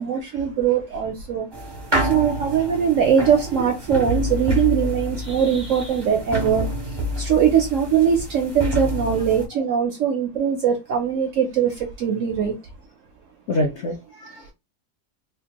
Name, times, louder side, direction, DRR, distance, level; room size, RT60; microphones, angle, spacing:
voice 1, 0.0-1.5 2.0-12.5, right 8 dB, 70° right, 0.8 m, -21 dB
sound 1, 1.5-9.5, equal, 30° right, 0.5 m, -28 dB
voice 2, 13.5-14.5, left 1 dB, 65° left, 0.7 m, -26 dB
3.5 x 2.3 x 2.8 m
omnidirectional pair, 1.8 m